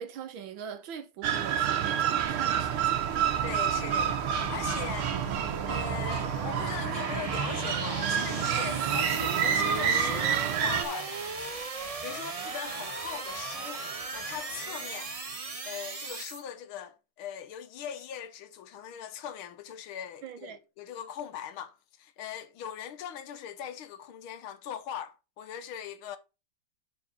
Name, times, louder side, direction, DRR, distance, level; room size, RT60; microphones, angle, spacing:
voice 1, 0.0-3.0 20.2-20.6, right 8 dB, 70° right, 1.7 m, -42 dB
sound 1, 1.2-10.8, right 8 dB, 85° right, 1.8 m, -28 dB
sound 2, 2.3-16.4, right 3 dB, 55° right, 0.4 m, -37 dB
voice 2, 3.4-5.4 5.7-11.2 12.0-15.1 15.6-26.2, left 9 dB, 80° left, 1.7 m, -40 dB
7.4 x 4.6 x 5.2 m
omnidirectional pair, 2.3 m